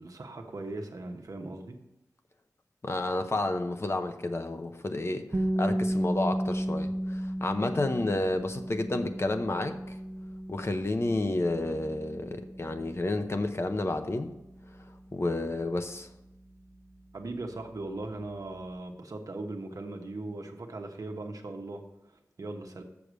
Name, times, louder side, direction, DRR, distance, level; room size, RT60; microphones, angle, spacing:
voice 1, 0.0-1.7 17.1-22.8, right 2 dB, 70° right, 3 dB, 1.2 m, -39 dB
voice 2, 2.8-5.3 5.6-10.0 10.5-14.3 15.1-16.1, left 2 dB, 45° left, 7 dB, 0.8 m, -30 dB
sound 1, 5.3-17.2, equal, 35° right, 1.1 m, -35 dB
7.1 x 6.7 x 6.3 m, 0.89 s
wide cardioid pair, 60°, 6 cm